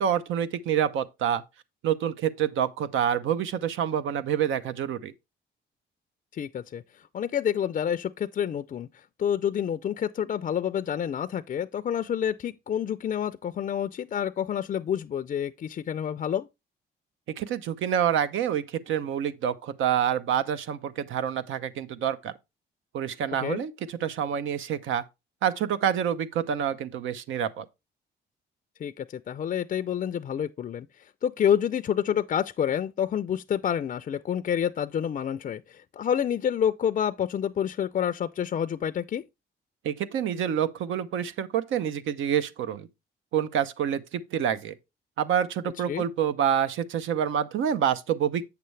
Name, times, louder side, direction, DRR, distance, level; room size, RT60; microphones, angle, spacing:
voice 1, 0.0-1.4 1.8-5.1 17.4-22.3 22.9-25.0 25.4-27.7 39.8-42.9 43.3-44.7 45.2-48.4, right 9 dB, 80° right, 0.7 m, -27 dB
voice 2, 6.3-6.8 7.1-8.9 9.2-16.5 23.4-23.6 28.8-30.9 31.2-39.2 45.9-46.0, left 9 dB, 40° left, 0.4 m, -28 dB
8.2 x 6.7 x 3.2 m
cardioid pair, 90°, 20 cm